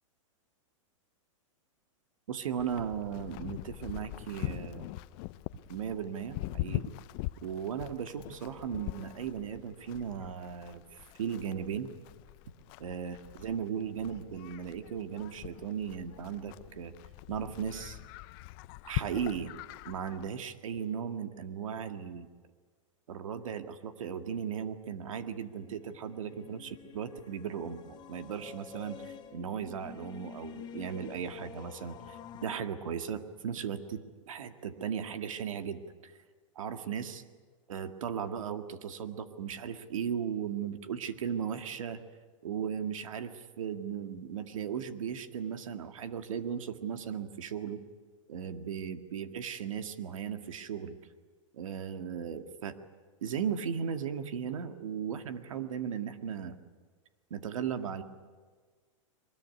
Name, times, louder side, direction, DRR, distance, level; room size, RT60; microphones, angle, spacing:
voice 1, 2.3-4.9 5.7-6.9 7.4-11.9 12.8-16.9 17.3-18.0 18.8-19.5 19.9-22.3 23.1-36.1 36.6-37.2 37.7-42.0 42.4-47.8 48.3-51.0 51.5-52.8 53.2-56.6 57.3-58.0, right 7 dB, 80° right, 8 dB, 2.0 m, -37 dB
Livestock farm animals working animals, 2.6-20.3, left 18 dB, 45° left, 0.6 m, -42 dB
sound 1, 25.3-32.6, left 8 dB, 25° left, 1.8 m, -49 dB
23.0 x 20.5 x 9.6 m, 1.5 s
hypercardioid pair, 135°, 17 cm